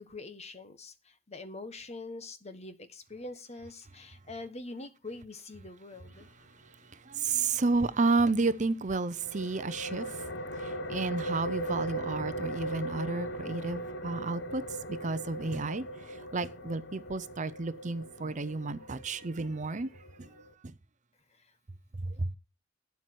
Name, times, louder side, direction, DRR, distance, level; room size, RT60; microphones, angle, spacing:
voice 1, 0.0-6.3, left 2 dB, 35° left, 1.3 m, -44 dB
voice 2, 7.1-10.1 10.6-14.6 14.9-19.9 20.2-20.3 22.0-22.3, right 3 dB, 40° right, 0.7 m, -31 dB
sound 1, 9.2-20.5, right 1 dB, 65° left, 1.1 m, -39 dB
12.0 x 9.2 x 4.6 m
head